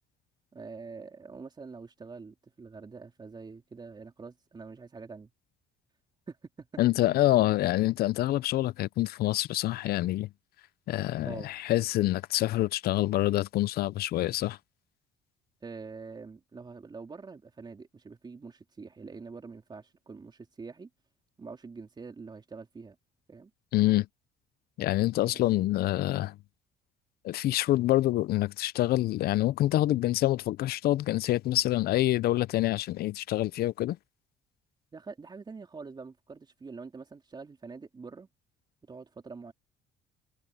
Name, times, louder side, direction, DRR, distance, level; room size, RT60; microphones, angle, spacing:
voice 1, 0.5-5.3 6.3-6.7 7.1-7.5 11.3-11.5 15.6-20.9 21.4-23.0 23.3-23.5 25.3-25.4 34.9-38.3 38.9-39.5, right 4 dB, 25° right, 3.8 m, -45 dB
voice 2, 6.8-10.3 10.9-14.6 23.7-24.1 24.8-26.4 27.2-34.0, left 15 dB, 65° left, 0.6 m, -26 dB
cardioid pair, 110°, 17 cm